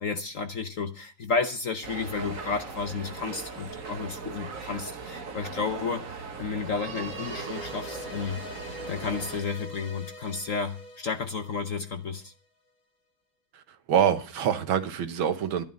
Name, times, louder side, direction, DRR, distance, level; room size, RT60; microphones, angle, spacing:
voice 1, 0.0-8.4 8.9-12.3, left 5 dB, 55° left, 1.0 m, -32 dB
sound 1, 1.8-9.4, right 4 dB, 45° right, 1.7 m, -39 dB
sound 2, 6.9-12.2, left 2 dB, 85° left, 2.9 m, -44 dB
voice 2, 13.9-15.6, right 8 dB, 80° right, 1.9 m, -25 dB
12.5 x 11.5 x 5.3 m
omnidirectional pair, 2.2 m